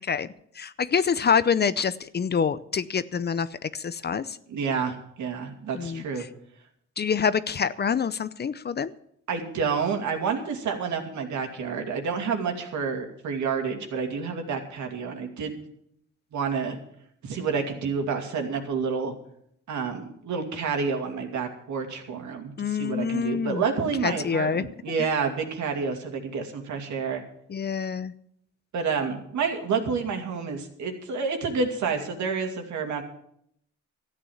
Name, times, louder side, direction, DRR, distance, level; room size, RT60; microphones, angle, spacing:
voice 1, 0.6-4.4 5.7-6.0 7.0-8.9 22.6-23.6 24.0-24.7 25.0-25.1 27.5-28.1, left 6 dB, 35° left, 15 dB, 0.6 m, -26 dB
voice 2, 4.5-6.2 9.3-15.6 16.3-16.8 17.2-19.1 19.7-27.2 28.7-33.0, right 5 dB, 70° right, 4 dB, 2.5 m, -29 dB
13.5 x 8.9 x 7.2 m, 0.72 s
cardioid pair, 90°, 30 cm